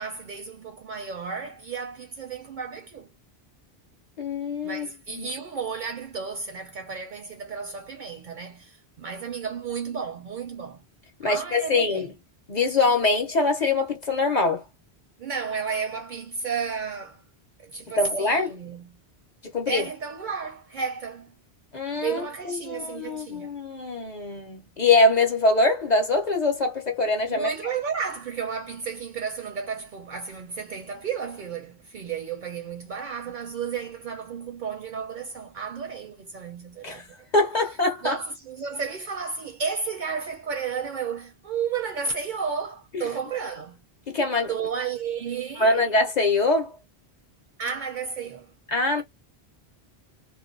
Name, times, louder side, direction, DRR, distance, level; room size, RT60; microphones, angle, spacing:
voice 1, 0.0-3.1 4.6-10.8 11.2-12.1 15.2-17.2 17.6-19.0 19.7-21.3 22.0-23.5 27.3-37.3 38.0-43.8 44.5-45.9 47.6-48.5, right 6 dB, 60° right, 0.6 m, -33 dB
voice 2, 4.2-4.9 5.1-5.3 11.2-12.1 12.5-14.6 18.0-18.5 19.5-19.8 21.7-27.5 36.8-37.0 37.3-38.1 42.9-43.0 44.1-44.5 45.6-46.7 48.7-49.0, left 3 dB, 50° left, 0.6 m, -23 dB
2.4 x 2.2 x 2.4 m
omnidirectional pair, 1.1 m